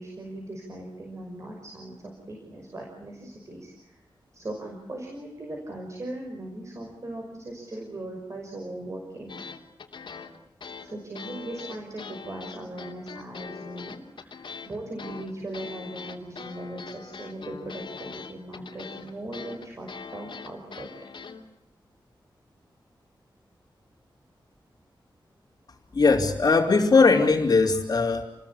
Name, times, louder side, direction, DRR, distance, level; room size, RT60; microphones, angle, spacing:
voice 1, 0.0-3.9 4.3-9.4 10.8-20.9, right 1 dB, 35° right, 1 dB, 5.9 m, -39 dB
sound 1, 9.3-21.4, left 5 dB, 80° left, 3.1 m, -42 dB
voice 2, 25.9-28.2, left 4 dB, 50° left, -3 dB, 3.2 m, -20 dB
29.5 x 21.0 x 8.6 m, 0.82 s
wide cardioid pair, 160°, 8 cm